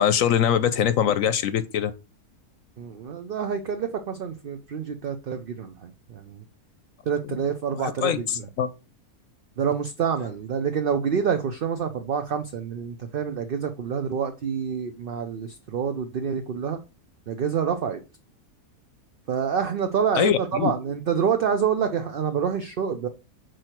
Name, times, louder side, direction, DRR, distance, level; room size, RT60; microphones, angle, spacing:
voice 1, 0.0-1.9 7.8-8.7 20.1-20.7, left 9 dB, 70° left, 1.0 m, -23 dB
voice 2, 2.8-6.4 7.1-8.5 9.6-16.8 17.3-18.0 19.3-23.1, right 7 dB, 55° right, 0.6 m, -27 dB
6.3 x 4.7 x 4.4 m
omnidirectional pair, 1.5 m